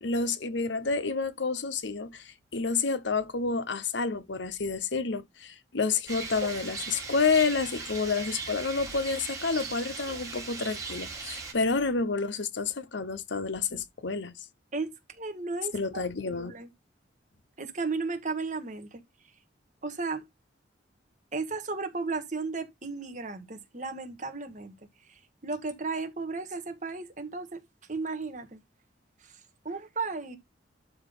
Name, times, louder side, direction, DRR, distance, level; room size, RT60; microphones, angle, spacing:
voice 1, 0.0-14.3 15.7-16.5, left 4 dB, 75° left, 0.9 m, -29 dB
Rain, 6.1-11.5, right 4 dB, 20° right, 2.9 m, -38 dB
voice 2, 14.7-16.7 17.6-19.4 19.8-20.2 21.3-27.6 27.9-28.6 29.2-30.4, right 4 dB, 40° right, 1.7 m, -35 dB
11.5 x 4.0 x 3.8 m
head